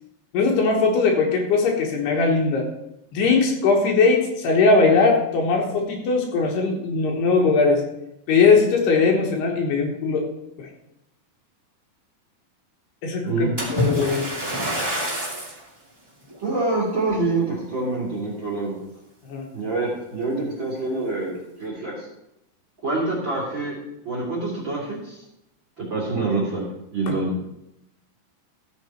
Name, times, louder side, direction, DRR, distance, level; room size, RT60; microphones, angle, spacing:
voice 1, 0.3-2.7 3.1-7.8 8.3-10.3 10.6-10.7 13.0-14.3 19.3-19.4 27.1-27.2, left 4 dB, 70° left, 1 dB, 3.2 m, -20 dB
voice 2, 13.2-13.5 16.4-18.7 19.5-22.1 22.8-23.8 24.0-25.2 25.9-26.6 26.9-27.3, right 3 dB, 30° right, -5 dB, 2.9 m, -26 dB
Splash splatter, 13.6-15.6 16.3-16.5 17.1-17.2, equal, 10° right, 1.9 m, -26 dB
14.0 x 7.4 x 4.4 m, 0.85 s
omnidirectional pair, 5.2 m